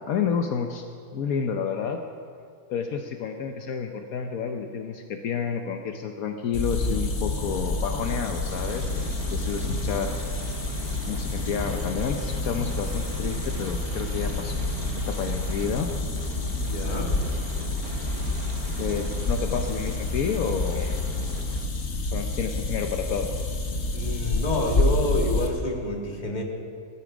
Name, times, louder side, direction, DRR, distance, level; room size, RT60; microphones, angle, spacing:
voice 1, 0.1-0.8 1.1-2.0 2.7-10.1 11.1-14.6 15.1-15.9 18.8-21.0 22.0-23.3, left 6 dB, 70° left, 5 dB, 1.2 m, -30 dB
sound 1, 6.5-25.5, left 2 dB, 50° left, 1.5 m, -28 dB
sound 2, 6.7-21.8 23.5-24.0, right 6 dB, 75° right, 1.4 m, -42 dB
voice 2, 16.6-17.2 23.9-26.4, left 1 dB, 30° left, 1 dB, 1.8 m, -28 dB
18.0 x 12.5 x 5.0 m, 2.3 s
omnidirectional pair, 1.6 m